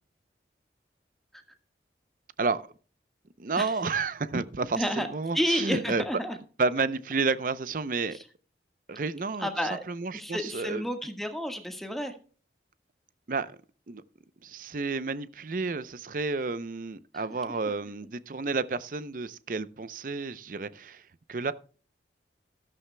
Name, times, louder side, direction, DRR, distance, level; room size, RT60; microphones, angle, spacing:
voice 1, 3.4-6.0 6.6-8.2 8.9-9.5 9.9-10.8 13.3-13.6 13.9-14.0 14.4-21.5, right 4 dB, 50° right, 0.6 m, -31 dB
voice 2, 4.8-5.1 5.3-6.4 9.4-9.8 10.1-12.1, equal, ahead, 1.4 m, -30 dB
13.5 x 13.0 x 2.2 m
head